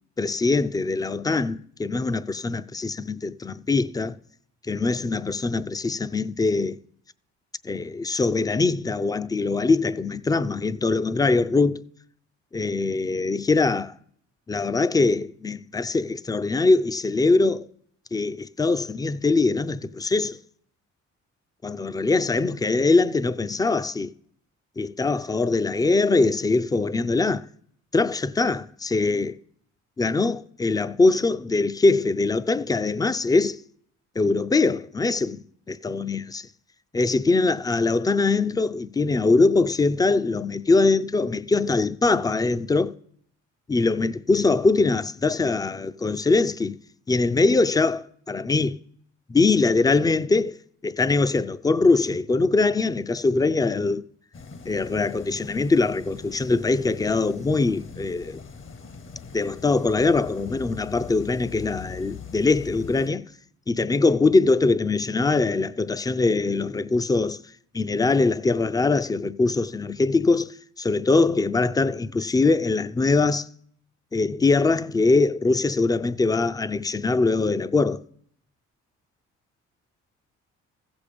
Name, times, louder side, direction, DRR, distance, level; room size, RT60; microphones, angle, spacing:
voice 1, 0.2-4.2 4.7-6.8 7.6-11.8 12.5-13.9 14.5-17.7 18.1-20.4 21.6-24.1 24.8-27.5 27.9-29.4 30.0-33.6 34.2-35.4 35.7-36.5 36.9-42.9 43.7-46.8 47.1-48.8 49.3-50.6 50.8-54.1 54.7-58.4 59.3-63.2 63.7-67.4 67.7-73.5 74.1-78.0, left 3 dB, 15° left, 0.4 m, -22 dB
sound 1, 54.3-63.1, left 5 dB, 40° left, 0.9 m, -42 dB
15.0 x 6.9 x 5.2 m
cardioid pair, 90°, 30 cm